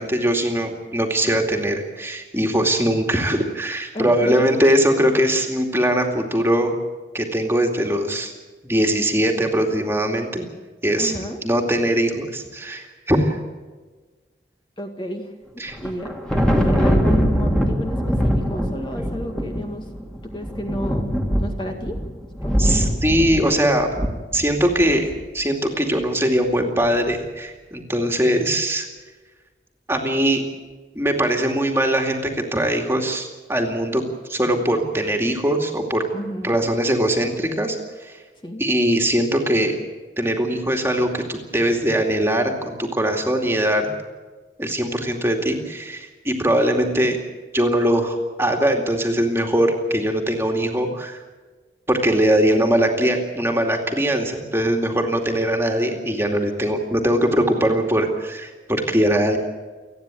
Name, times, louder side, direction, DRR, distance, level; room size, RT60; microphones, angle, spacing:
voice 1, 0.0-6.7 7.1-8.3 8.6-10.5 10.8-11.1 11.4-13.4 15.6-15.8 22.6-23.9 24.3-28.9 29.9-30.4 30.9-34.0 34.3-36.0 36.4-37.8 38.0-38.2 38.6-39.7 40.2-43.9 44.6-47.2 47.5-51.2 51.9-59.4, right 1 dB, 15° right, 2 dB, 2.4 m, -21 dB
voice 2, 3.9-4.4 11.0-11.4 14.8-15.3 15.8-19.9 20.3-22.0 22.4-22.7 36.1-36.6 38.4-38.7, equal, 25° left, 3 dB, 1.9 m, -31 dB
Thunder, 15.7-25.1, equal, 5° left, 2.2 m, -22 dB
29.5 x 10.0 x 9.1 m, 1.3 s
head